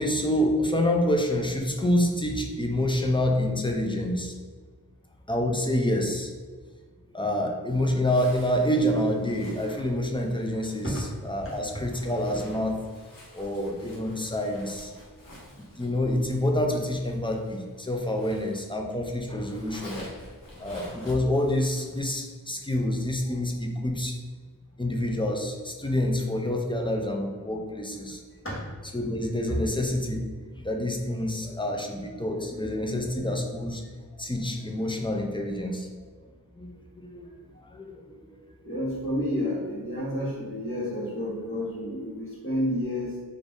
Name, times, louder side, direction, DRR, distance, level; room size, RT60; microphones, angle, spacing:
voice 1, 0.0-4.4 5.3-6.3 7.1-10.9 11.2-12.8 13.3-14.9 15.6-20.0 20.6-24.2 24.8-28.2 28.9-30.2 30.6-33.8 34.2-35.9 36.5-37.3 37.6-38.4, left 1 dB, 15° left, 2 dB, 0.4 m, -27 dB
Zipper (clothing), 8.0-18.9 19.2-22.2, left 1 dB, 65° left, 0.9 m, -48 dB
voice 2, 38.6-43.2, equal, 35° left, -6 dB, 1.2 m, -30 dB
2.5 x 2.5 x 3.5 m, 1.5 s
wide cardioid pair, 55°, 35 cm